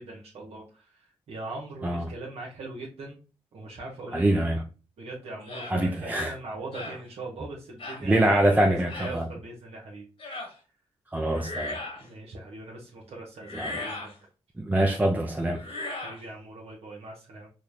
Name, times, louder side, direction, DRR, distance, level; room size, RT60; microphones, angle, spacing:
voice 1, 0.0-3.2 3.5-4.4 5.0-10.1 12.0-14.1 15.9-17.5, right 2 dB, 80° right, 0.9 m, -41 dB
voice 2, 4.1-4.6 5.7-6.3 8.0-9.2 11.1-11.8 13.5-13.7 14.6-15.6, right 1 dB, 15° right, 0.5 m, -24 dB
sound 1, 5.5-5.8 6.7-7.0 7.8-8.0 8.9-9.2 10.2-10.5 11.3-12.1 13.4-14.1 15.6-16.2, left 2 dB, 65° left, 1.4 m, -37 dB
4.0 x 2.1 x 3.1 m
cardioid pair, 55°, 11 cm